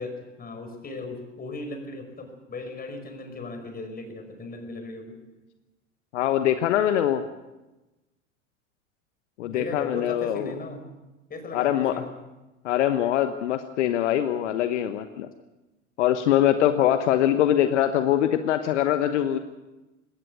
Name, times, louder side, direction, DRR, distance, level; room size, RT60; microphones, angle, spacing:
voice 1, 0.0-5.2 9.4-10.9 11.3-12.1, left 3 dB, 25° left, 6 dB, 5.5 m, -37 dB
voice 2, 6.1-7.2 9.4-10.5 11.5-12.0 12.6-15.3 16.0-19.4, left 11 dB, 65° left, 9 dB, 1.2 m, -23 dB
20.0 x 18.5 x 8.0 m, 1.1 s
hypercardioid pair, 85°, 38 cm